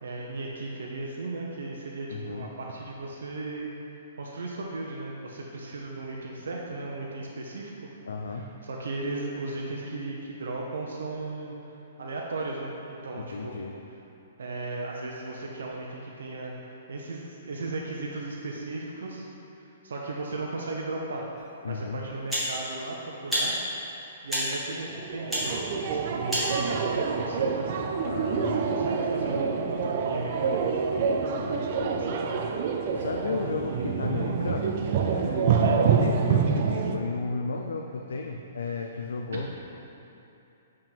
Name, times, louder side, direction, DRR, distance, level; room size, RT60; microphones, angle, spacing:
voice 1, 0.0-3.7 4.2-7.7 8.3-11.6 12.0-13.5 14.4-16.5 16.9-19.3 19.6-21.3 21.7-23.5 24.2-27.7 28.4-30.8 32.0-32.5 35.6-35.8 39.3-39.5, right 2 dB, 85° right, -2 dB, 0.8 m, -36 dB
voice 2, 2.1-2.5 8.1-8.5 13.2-13.8 21.6-22.0 28.0-28.7 31.4-32.1 32.9-34.8 35.0-39.5, left 4 dB, 90° left, 2 dB, 0.4 m, -34 dB
sound 1, 21.4-21.5 22.3-22.5 23.3-23.5 24.3-24.5 25.3-25.5 26.3-26.5, equal, 5° right, 1.4 m, -28 dB
sound 2, 24.9-37.0, right 6 dB, 40° right, 0.4 m, -27 dB
7.6 x 3.7 x 4.5 m, 2.9 s
hypercardioid pair, 160°, 0 cm